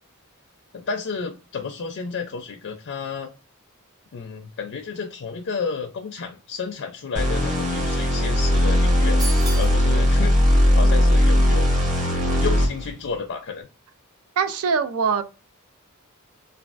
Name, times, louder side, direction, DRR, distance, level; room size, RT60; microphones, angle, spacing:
voice 1, 0.7-3.3 4.1-11.8 12.4-13.7, left 5 dB, 55° left, 0.4 m, -31 dB
sound 1, 7.1-12.9, left 1 dB, 35° right, 1.4 m, -19 dB
sound 2, 9.2-9.8, right 2 dB, 20° right, 0.5 m, -32 dB
voice 2, 14.4-15.2, right 6 dB, 75° right, 0.4 m, -22 dB
3.3 x 2.3 x 2.4 m
head